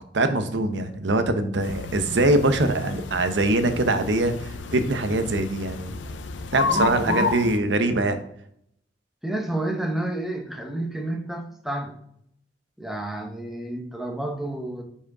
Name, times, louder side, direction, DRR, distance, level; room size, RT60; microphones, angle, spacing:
voice 1, 0.0-6.0 6.5-8.2, right 2 dB, 75° right, 9 dB, 0.7 m, -23 dB
sound 1, 1.6-7.6, left 5 dB, 80° left, 0.5 m, -31 dB
voice 2, 6.6-7.3 9.2-11.9 12.8-14.8, right 1 dB, ahead, 2 dB, 0.8 m, -30 dB
5.0 x 5.0 x 4.7 m, 0.71 s
head